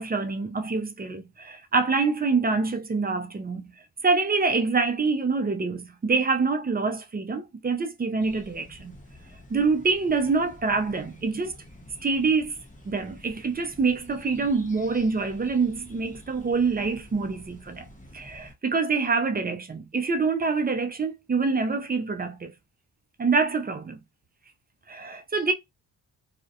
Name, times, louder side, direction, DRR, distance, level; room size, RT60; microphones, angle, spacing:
voice 1, 0.0-3.7 4.0-9.0 9.5-11.5 12.0-12.5 12.8-17.9 18.1-22.5 23.2-24.0 24.9-25.5, right 4 dB, 25° right, 0.4 m, -26 dB
sound 1, 8.2-18.5, left 1 dB, 20° left, 1.0 m, -49 dB
2.3 x 2.1 x 2.7 m
cardioid pair, 55°, 40 cm